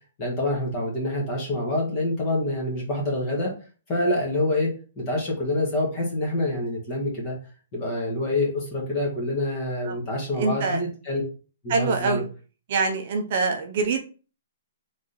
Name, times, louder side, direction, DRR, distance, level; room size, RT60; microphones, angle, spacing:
voice 1, 0.2-3.5 3.9-4.7 5.0-7.3 7.7-11.2 11.6-12.2, left 1 dB, 20° left, -2 dB, 1.3 m, -26 dB
voice 2, 10.4-10.8 11.7-12.3 12.7-14.0, right 4 dB, 40° right, 3 dB, 0.6 m, -24 dB
3.6 x 3.1 x 4.0 m, 0.36 s
hypercardioid pair, 175°, 0 cm